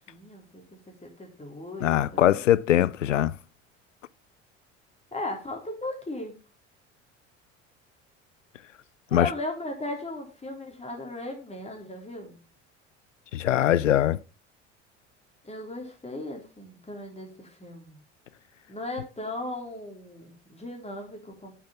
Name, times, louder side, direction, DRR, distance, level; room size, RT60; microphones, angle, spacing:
voice 1, 0.1-2.5 5.1-6.4 9.1-12.4 15.4-18.0 18.7-21.5, left 2 dB, 15° left, 4.3 m, -37 dB
voice 2, 1.8-3.3 9.1-9.3 13.3-14.2, left 12 dB, 85° left, 0.5 m, -22 dB
8.7 x 7.2 x 5.9 m
figure-of-eight pair, 65°, 36 cm